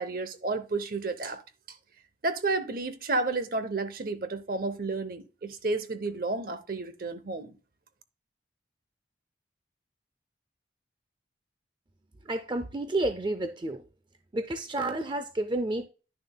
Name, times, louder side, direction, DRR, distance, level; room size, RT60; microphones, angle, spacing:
voice 1, 0.0-1.4 1.7-1.8 2.2-7.6, right 3 dB, 50° right, 0.8 m, -31 dB
voice 2, 12.2-13.8 14.3-15.9, right 2 dB, 25° right, 0.4 m, -30 dB
11.0 x 6.7 x 2.2 m
head